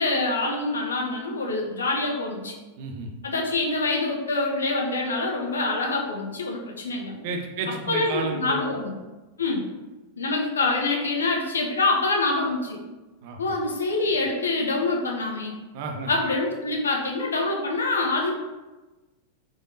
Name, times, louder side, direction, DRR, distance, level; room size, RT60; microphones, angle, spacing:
voice 1, 0.0-2.6 3.2-7.2 7.9-8.9 9.4-9.7 10.2-12.8 13.4-15.6 16.1-18.3, left 3 dB, 70° left, 0 dB, 0.6 m, -25 dB
voice 2, 2.8-3.1 7.2-8.6 13.2-13.5 15.7-16.1, right 4 dB, 50° right, 2 dB, 0.5 m, -32 dB
3.7 x 3.4 x 2.5 m, 1.2 s
figure-of-eight pair, 90°, 0 cm